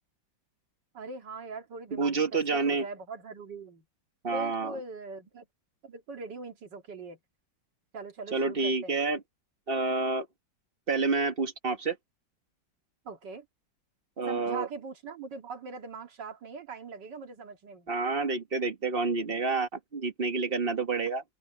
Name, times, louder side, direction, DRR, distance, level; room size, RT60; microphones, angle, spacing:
voice 1, 0.9-3.8 4.3-5.5 5.8-7.2 7.9-9.0 13.0-13.5 14.2-17.9, right 4 dB, 70° right, 2.6 m, -41 dB
voice 2, 1.9-2.9 4.2-4.7 8.3-9.2 9.7-10.3 10.9-12.0 14.2-14.7 17.9-21.2, right 3 dB, 30° right, 1.7 m, -28 dB
open air
omnidirectional pair, 2.0 m